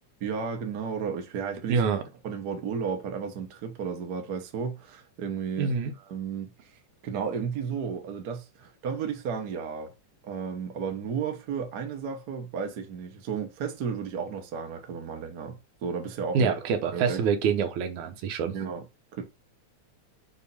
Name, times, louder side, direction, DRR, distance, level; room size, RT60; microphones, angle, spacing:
voice 1, 0.2-1.8 2.2-5.7 6.1-6.7 7.0-9.9 10.2-17.2 18.5-18.9 19.1-19.2, right 6 dB, 55° right, 1.2 m, -33 dB
voice 2, 1.7-2.0 5.6-5.9 16.3-18.6, right 6 dB, 80° right, 2.4 m, -26 dB
6.7 x 2.9 x 5.4 m
omnidirectional pair, 3.4 m